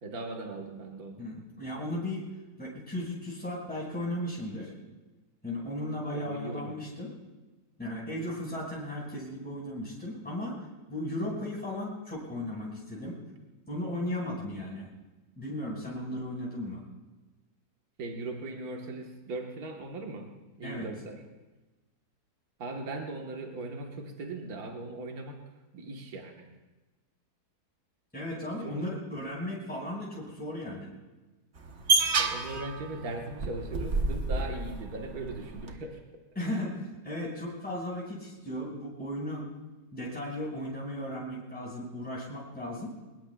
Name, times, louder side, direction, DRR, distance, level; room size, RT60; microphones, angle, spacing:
voice 1, 0.0-1.2 6.1-6.8 18.0-20.3 20.6-21.2 22.6-25.4 25.7-26.5 28.6-28.9 32.2-36.0, right 2 dB, 65° right, 1 dB, 1.9 m, -39 dB
voice 2, 1.2-2.3 2.6-4.7 5.4-7.1 7.8-10.6 10.9-13.2 13.7-14.9 15.4-16.8 20.6-20.9 28.1-30.9 36.4-39.5 39.9-43.0, left 1 dB, 5° left, -6 dB, 5.6 m, -36 dB
sound 1, 31.6-35.7, right 3 dB, 45° right, 1.3 m, -29 dB
23.0 x 21.0 x 2.4 m, 1.2 s
omnidirectional pair, 1.7 m